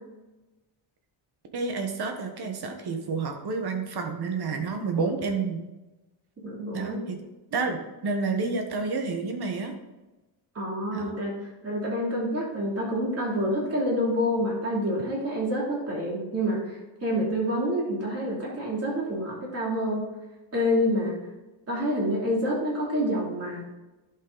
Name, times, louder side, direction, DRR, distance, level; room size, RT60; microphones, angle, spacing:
voice 1, 1.5-5.6 6.7-7.2 7.5-9.7 10.9-11.2, right 4 dB, 50° right, 4 dB, 1.4 m, -29 dB
voice 2, 6.4-7.0 10.5-11.3 11.6-20.0 20.5-21.2 21.7-23.7, equal, 30° right, -4 dB, 3.1 m, -27 dB
10.5 x 5.8 x 4.0 m, 1.1 s
wide cardioid pair, 175°, 49 cm